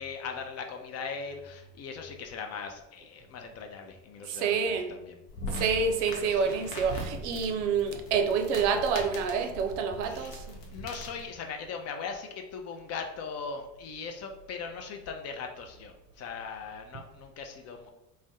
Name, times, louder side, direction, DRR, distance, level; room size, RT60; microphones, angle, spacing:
voice 1, 0.0-5.2 6.1-6.5 10.1-10.3 10.7-17.9, left 5 dB, 40° left, 4 dB, 0.5 m, -39 dB
voice 2, 4.3-5.0 5.5-10.6, right 5 dB, 70° right, 6 dB, 0.5 m, -28 dB
sound 1, 5.3-11.3, left 1 dB, 70° left, 0.8 m, -40 dB
2.5 x 2.1 x 3.5 m, 0.91 s
hypercardioid pair, 70°, 39 cm